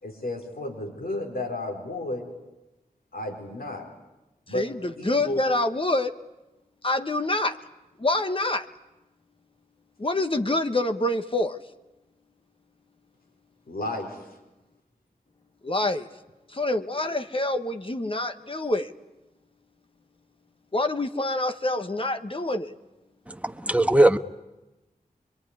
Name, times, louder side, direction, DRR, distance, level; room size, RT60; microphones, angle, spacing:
voice 1, 0.0-2.3 3.1-3.9 4.5-4.7 5.0-5.4 13.7-14.2, left 1 dB, 85° left, 4.4 m, -32 dB
voice 2, 4.5-6.1 6.8-7.6 8.0-8.7 10.0-11.6 15.6-16.1 16.5-18.9 20.7-22.7, left 2 dB, 35° left, 1.3 m, -26 dB
voice 3, 23.3-24.2, right 1 dB, 10° right, 1.2 m, -20 dB
24.0 x 23.5 x 9.8 m
wide cardioid pair, 50°, 15 cm